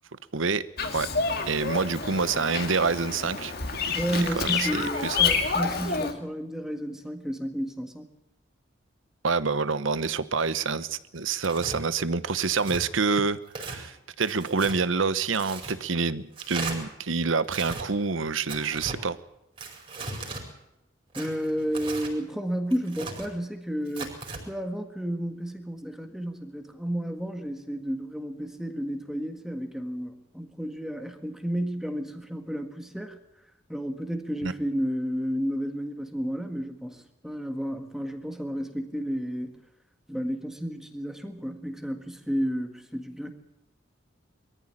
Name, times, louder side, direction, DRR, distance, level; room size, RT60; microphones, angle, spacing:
voice 1, 0.3-0.6 0.9-1.1 1.5-3.5 4.1-5.2 9.2-19.2 34.4-34.5, right 4 dB, 85° right, 15 dB, 1.0 m, -27 dB
Bird vocalization bird call bird song, 0.8-6.1, left 5 dB, 50° left, 2.3 m, -28 dB
voice 2, 3.9-8.1 21.1-24.1 24.5-33.2 33.7-39.6 40.1-43.3, equal, ahead, 6 dB, 1.6 m, -32 dB
Tearing, 11.4-11.8 12.4-12.8 13.5-13.8 14.2-14.8 15.3-15.8 16.4-16.8 17.4-17.8 18.5-19.0 19.6-20.4 21.1-22.1 22.7-23.3 23.9-24.4, right 3 dB, 30° right, 5.0 m, -37 dB
22.5 x 14.5 x 8.7 m, 0.89 s
head